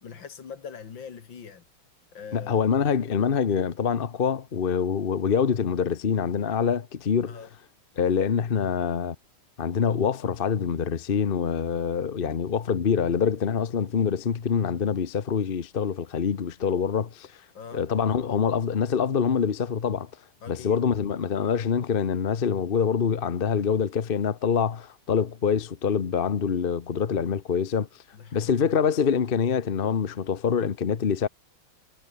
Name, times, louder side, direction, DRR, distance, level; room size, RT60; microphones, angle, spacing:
voice 1, 0.0-1.6 2.1-2.6 7.2-7.5 17.5-17.8 20.4-20.8 27.1-27.3 28.1-28.5, left 6 dB, 65° left, 2.7 m, -42 dB
voice 2, 2.3-7.4 8.0-9.2 9.6-17.3 17.7-20.1 20.5-27.9 28.3-31.3, left 6 dB, 40° left, 0.8 m, -25 dB
omnidirectional pair, 2.3 m